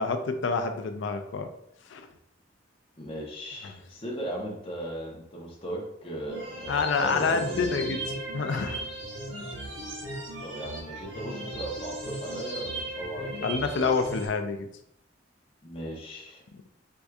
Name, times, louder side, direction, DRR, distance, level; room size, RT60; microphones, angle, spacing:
voice 1, 0.0-1.5 1.9-2.1 3.6-3.8 6.7-8.0 8.3-8.9 13.4-14.7, left 4 dB, 75° left, 7 dB, 0.4 m, -27 dB
voice 2, 3.0-8.0 10.4-14.2 15.6-16.4, right 1 dB, 30° left, -2 dB, 0.8 m, -37 dB
sound 1, 6.3-14.3, right 1 dB, 75° right, 1.3 m, -37 dB
4.5 x 2.6 x 2.3 m, 0.75 s
head